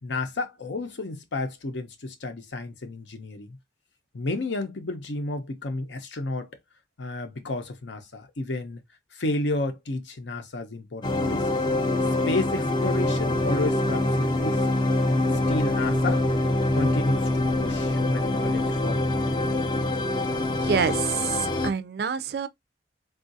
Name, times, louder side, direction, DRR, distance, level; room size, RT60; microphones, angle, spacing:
voice 1, 0.0-3.6 4.1-6.5 7.0-8.8 9.1-11.5 12.1-14.6 15.5-16.2 16.7-19.2, left 2 dB, 80° left, 0.7 m, -31 dB
sound 1, 11.0-21.7, left 2 dB, 25° left, 0.4 m, -24 dB
voice 2, 20.5-22.5, right 6 dB, 60° right, 0.4 m, -27 dB
3.6 x 2.4 x 2.6 m
head